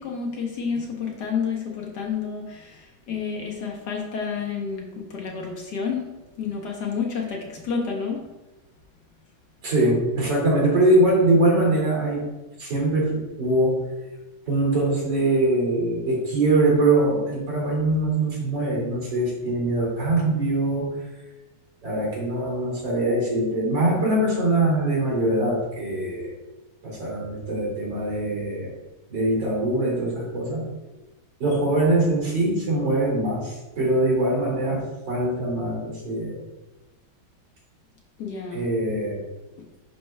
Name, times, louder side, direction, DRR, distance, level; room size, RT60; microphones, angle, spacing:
voice 1, 0.0-6.1 6.4-8.2 38.2-38.6, left 6 dB, 60° left, -1 dB, 1.4 m, -30 dB
voice 2, 9.6-12.3 12.6-13.9 14.5-20.9 21.8-26.3 26.8-28.7 29.1-30.6 31.4-36.4 38.5-39.2, right 2 dB, 65° right, -4 dB, 2.9 m, -22 dB
11.0 x 4.5 x 2.2 m, 1.1 s
omnidirectional pair, 2.2 m